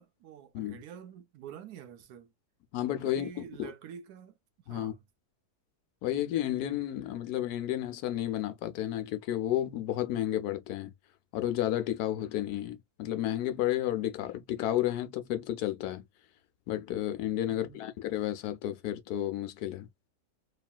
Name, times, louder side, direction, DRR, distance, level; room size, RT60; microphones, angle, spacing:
voice 1, 0.0-2.3 3.0-5.0 17.5-17.9, right 8 dB, 80° right, 1.2 m, -48 dB
voice 2, 2.7-3.3 3.6-3.7 4.7-4.9 6.0-10.9 11.3-16.1 16.7-19.9, left 12 dB, 80° left, 1.1 m, -32 dB
3.0 x 2.4 x 2.3 m
omnidirectional pair, 1.7 m